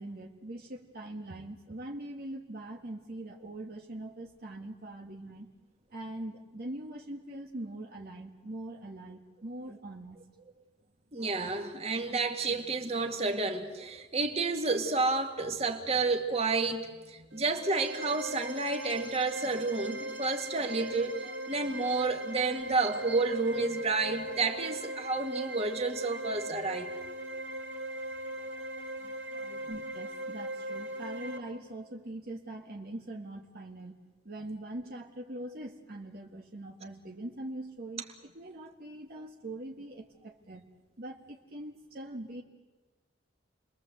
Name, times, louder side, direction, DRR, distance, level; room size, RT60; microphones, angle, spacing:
voice 1, 0.0-5.5 5.9-10.2 29.7-34.0 34.3-40.6 41.0-42.4, right 1 dB, 55° right, 1 dB, 1.8 m, -42 dB
voice 2, 11.1-26.9 29.4-29.6, right 3 dB, 35° right, 4 dB, 2.2 m, -30 dB
sound 1, 17.3-31.4, right 1 dB, 70° right, 3.4 m, -39 dB
30.0 x 21.5 x 8.0 m, 1.3 s
head